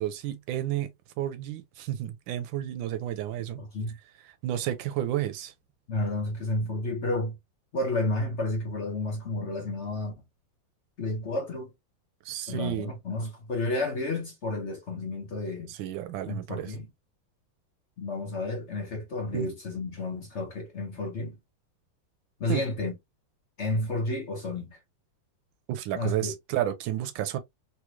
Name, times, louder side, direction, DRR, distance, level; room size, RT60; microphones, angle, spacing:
voice 1, 0.0-3.6 4.4-5.5 12.2-12.9 15.7-16.7 19.3-19.5 22.5-22.6 25.7-27.4, right 12 dB, 90° right, 1.3 m, -31 dB
voice 2, 3.6-4.0 5.9-7.4 7.7-10.1 11.0-11.7 12.5-15.7 16.3-16.9 18.0-21.3 22.4-22.9 23.6-24.8 25.9-26.3, left 2 dB, 55° left, 0.8 m, -31 dB
3.3 x 3.1 x 2.3 m
omnidirectional pair, 2.1 m